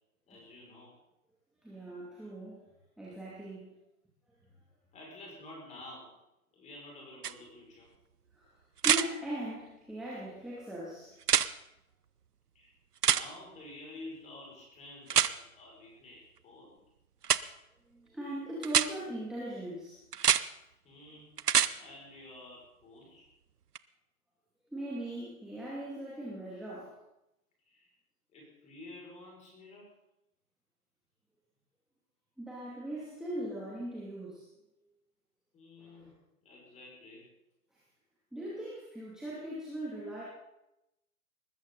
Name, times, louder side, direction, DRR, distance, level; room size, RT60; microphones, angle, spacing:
voice 1, 0.3-0.9 4.9-6.1 6.5-7.9 12.5-12.7 13.1-16.7 20.8-21.3 21.8-23.3 27.7-27.9 28.3-29.9 35.5-36.1 36.4-37.2, left 2 dB, 15° left, -2 dB, 6.2 m, -50 dB
voice 2, 1.6-2.6 3.0-3.8 8.3-8.5 8.8-11.1 17.9-20.0 24.7-27.0 32.4-34.5 35.8-36.1 38.3-40.2, right 1 dB, ahead, -7 dB, 2.7 m, -40 dB
sound 1, 7.2-7.3 8.8-9.1 11.2-11.5 13.0-13.2 15.1-15.3 17.2-17.4 18.6-18.9 20.1-20.4 21.4-21.7 23.8-23.9, right 8 dB, 85° right, 0.8 m, -25 dB
20.5 x 14.5 x 4.1 m, 0.88 s
hypercardioid pair, 135°, 45 cm